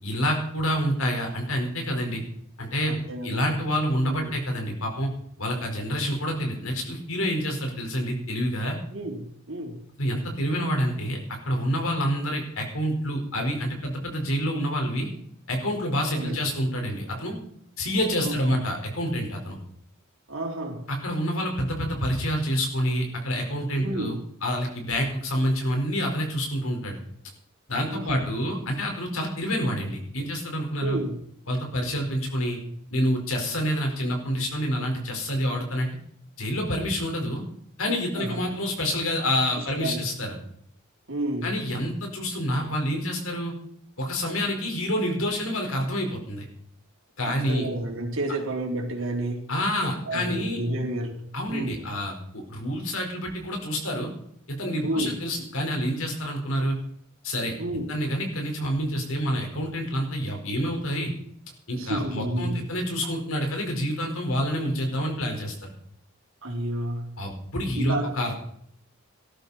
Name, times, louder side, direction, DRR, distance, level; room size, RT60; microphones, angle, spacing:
voice 1, 0.0-2.2 2.6-2.9 3.2-5.1 5.4-8.8 10.0-11.2 11.4-15.1 15.5-17.4 17.8-19.6 20.9-24.1 24.4-27.0 27.7-31.0 31.5-32.6 32.9-35.9 36.4-37.4 37.8-40.4 41.4-43.5 44.0-46.4 47.2-47.7 49.5-50.6 51.3-54.1 54.5-56.8 57.2-57.5 57.9-61.1 61.7-65.7 67.2-68.3, equal, 75° left, 2 dB, 4.7 m, -27 dB
voice 2, 2.9-3.6 4.0-4.4 8.9-9.9 16.1-16.4 18.2-18.6 20.3-20.9 23.8-24.2 27.9-28.2 30.8-31.2 38.2-38.4 39.6-40.1 41.1-41.6 47.3-49.5 50.1-51.8 54.8-55.2 57.6-57.9 61.8-62.6 66.4-67.1 67.8-68.1, right 1 dB, 70° right, 2 dB, 3.5 m, -31 dB
18.5 x 13.5 x 4.3 m, 0.68 s
head